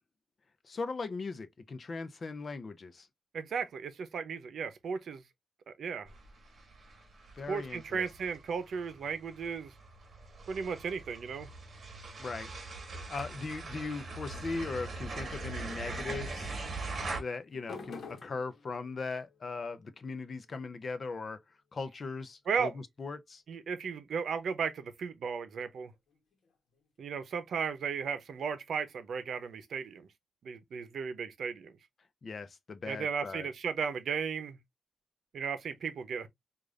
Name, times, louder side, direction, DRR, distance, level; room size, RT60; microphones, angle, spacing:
voice 1, 0.7-3.1 7.4-8.1 12.2-12.5 13.1-16.5 17.1-21.4 21.7-22.7 23.0-23.4 32.2-33.5, left 4 dB, 40° left, 0.5 m, -39 dB
voice 2, 3.3-5.2 5.7-6.1 7.5-9.7 10.5-11.5 22.5-22.7 23.5-25.9 27.0-30.1 30.4-31.7 32.9-34.6 35.3-36.3, right 6 dB, 80° right, 0.7 m, -35 dB
sound 1, 6.1-17.2, right 3 dB, 45° right, 1.4 m, -42 dB
sound 2, 16.4-23.2 24.9-28.0, left 5 dB, 70° left, 1.0 m, -55 dB
4.9 x 2.5 x 2.4 m
wide cardioid pair, 180°, 0 cm